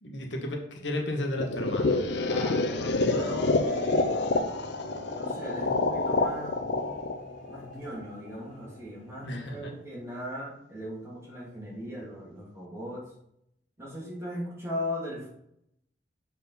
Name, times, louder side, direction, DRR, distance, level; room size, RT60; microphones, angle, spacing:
voice 1, 0.0-2.1 9.2-9.7, left 1 dB, 90° left, 2 dB, 1.3 m, -33 dB
sound 1, 1.4-8.3, left 3 dB, 65° left, 0.6 m, -28 dB
sound 2, 2.1-10.6, equal, 50° right, 2.2 m, -51 dB
voice 2, 2.3-4.2 5.1-6.6 7.5-13.0 13.8-15.3, equal, 15° right, -5 dB, 2.4 m, -38 dB
6.7 x 4.7 x 4.1 m, 0.74 s
head